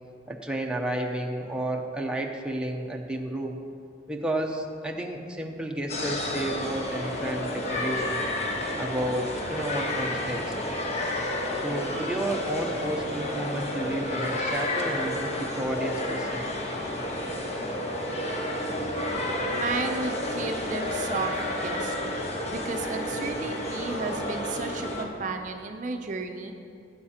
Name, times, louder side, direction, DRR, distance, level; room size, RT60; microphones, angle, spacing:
voice 1, 0.3-3.6 4.1-8.3 8.8-10.5 11.5-16.5, right 1 dB, 5° right, 1 dB, 0.7 m, -32 dB
sound 1, 5.9-25.0, left 1 dB, 35° left, 1.1 m, -30 dB
voice 2, 19.5-26.5, right 3 dB, 40° right, 5 dB, 0.5 m, -33 dB
17.0 x 8.8 x 2.9 m, 2.4 s
head